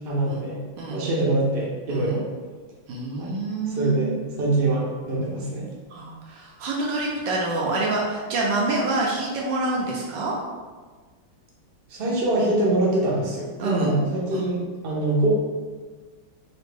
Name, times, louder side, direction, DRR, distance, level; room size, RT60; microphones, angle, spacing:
voice 1, 0.0-0.6 0.9-2.2 3.2-3.3 3.8-5.7 11.9-15.3, right 2 dB, 50° right, -5 dB, 0.7 m, -24 dB
voice 2, 2.9-4.1 5.9-10.3 13.6-13.9 14.3-14.5, right 2 dB, 75° right, -2 dB, 1.2 m, -27 dB
4.2 x 2.5 x 3.3 m, 1.4 s
omnidirectional pair, 2.2 m